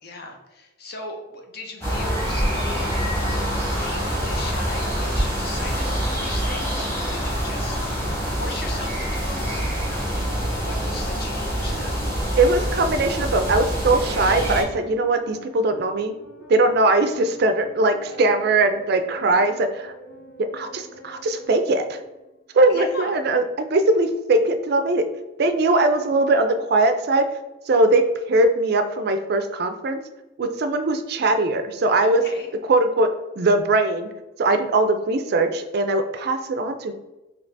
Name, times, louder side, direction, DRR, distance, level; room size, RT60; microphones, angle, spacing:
voice 1, 0.0-2.9 3.8-12.1 22.7-23.1 32.0-32.5, left 2 dB, 55° left, 2 dB, 0.7 m, -38 dB
sound 1, 1.8-14.6, equal, 10° left, 1.1 m, -25 dB
sound 2, 2.7-10.0, equal, 30° left, 1.3 m, -40 dB
sound 3, 5.6-22.6, right 1 dB, 90° left, 1.4 m, -45 dB
voice 2, 12.4-16.1 16.5-19.9 20.4-22.0 22.5-23.4 23.7-25.1 25.4-27.3 27.7-28.0 28.3-30.0 30.4-32.2 32.7-33.1 33.4-34.1 34.4-36.9, right 2 dB, 55° right, 8 dB, 0.4 m, -20 dB
3.9 x 2.8 x 3.3 m, 1.0 s
head